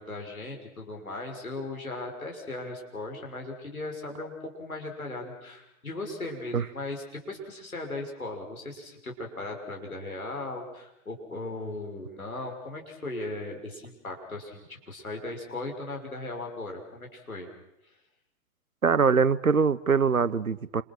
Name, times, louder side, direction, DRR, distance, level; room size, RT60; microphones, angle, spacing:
voice 1, 0.0-17.5 17.8-17.9, left 2 dB, 85° left, 2 dB, 6.5 m, -37 dB
voice 2, 18.8-20.8, right 5 dB, 90° right, 20 dB, 1.0 m, -23 dB
29.5 x 26.5 x 6.3 m, 0.86 s
figure-of-eight pair, 95°, 42 cm